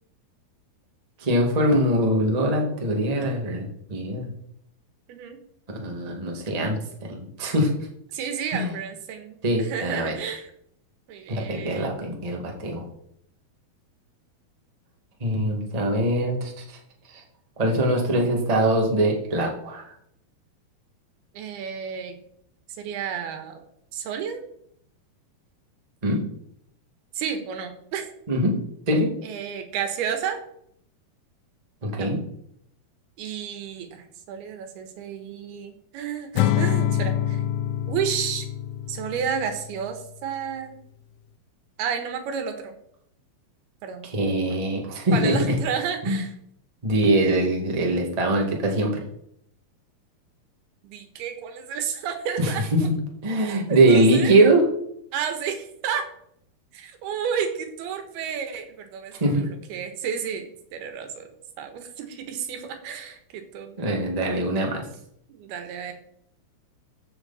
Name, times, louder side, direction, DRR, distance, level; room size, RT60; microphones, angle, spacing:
voice 1, 1.2-4.3 5.7-7.7 8.5-8.7 9.4-10.1 11.3-12.9 15.2-16.8 17.1-17.2 17.6-19.9 26.0-26.2 28.3-28.5 28.9-29.1 31.8-32.2 44.0-45.6 46.0-46.2 46.8-49.0 52.4-52.8 53.2-54.6 59.2-59.4 63.8-64.9, right 1 dB, 20° right, 0 dB, 1.2 m, -22 dB
voice 2, 8.1-10.5 11.1-11.9 21.4-22.2 22.8-23.6 23.9-24.4 27.2-28.1 29.2-30.4 32.0-32.1 33.2-37.4 37.9-38.5 38.9-40.8 41.8-42.8 43.8-44.6 45.1-46.3 50.8-52.6 53.7-54.3 55.1-56.1 56.7-61.3 61.6-64.0 65.3-65.9, right 7 dB, 90° right, 6 dB, 3.3 m, -31 dB
Acoustic guitar / Strum, 36.4-39.7, left 11 dB, 85° left, 2.5 m, -25 dB
15.0 x 6.5 x 4.2 m, 0.71 s
omnidirectional pair, 4.4 m